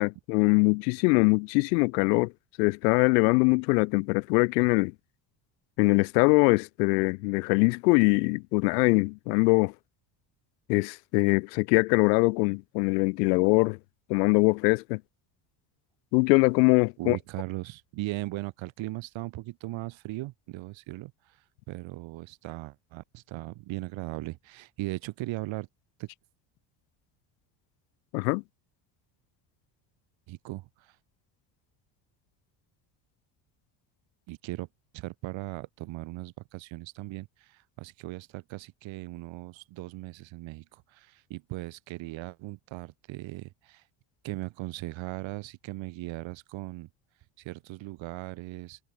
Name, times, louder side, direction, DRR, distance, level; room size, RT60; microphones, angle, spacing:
voice 1, 0.0-2.3 2.6-4.9 5.8-9.7 10.7-13.8 14.1-15.0 16.1-17.2 28.1-28.4, left 30 dB, 85° left, 1.6 m, -23 dB
voice 2, 17.0-21.1 21.7-25.7 26.0-26.1 30.3-30.7 34.3-34.7 34.9-37.3 37.8-43.8 44.2-46.9 47.4-48.8, right 19 dB, 70° right, 4.9 m, -38 dB
supercardioid pair, 90°, 48 cm